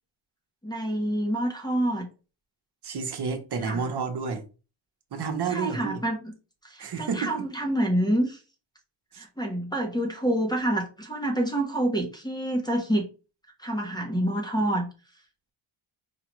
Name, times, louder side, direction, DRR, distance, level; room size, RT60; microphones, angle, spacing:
voice 1, 0.6-2.1 3.6-3.8 5.5-6.3 6.6-8.4 9.2-13.1 13.6-14.9, right 1 dB, 10° left, 0.8 m, -27 dB
voice 2, 2.8-4.4 5.1-6.0 6.8-7.5 9.1-9.2, right 5 dB, 50° right, 1.0 m, -30 dB
5.1 x 2.4 x 3.1 m
cardioid pair, 115°, 50 cm